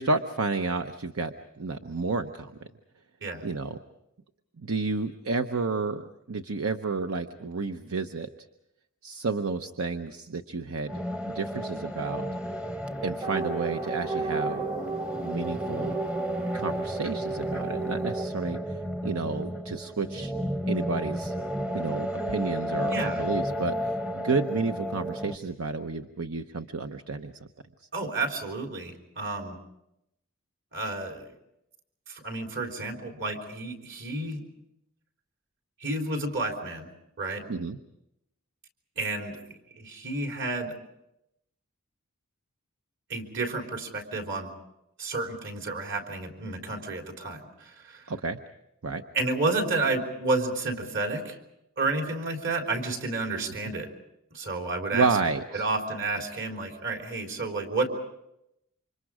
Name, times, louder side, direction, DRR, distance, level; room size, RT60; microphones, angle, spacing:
voice 1, 0.0-2.5 3.4-3.8 4.6-8.3 9.0-11.0 11.3-12.3 13.0-14.7 15.2-16.0 16.5-18.8 19.0-20.3 20.7-21.3 21.7-27.3 37.5-37.8 48.1-48.4 48.8-49.0 54.9-55.6, right 3 dB, 75° right, 8 dB, 0.9 m, -31 dB
sound 1, 10.9-25.4, equal, 5° right, 0.8 m, -33 dB
sound 2, 13.2-18.3, right 4 dB, 30° right, 1.3 m, -33 dB
voice 2, 22.9-23.2 27.9-29.6 30.7-31.2 32.1-34.4 35.8-36.9 37.2-37.4 39.0-39.4 39.8-40.7 43.1-44.5 45.0-48.0 49.1-51.4 51.8-53.9 54.3-55.1 55.5-57.9, right 3 dB, 60° right, 3 dB, 3.7 m, -31 dB
28.5 x 26.0 x 4.9 m, 0.83 s
head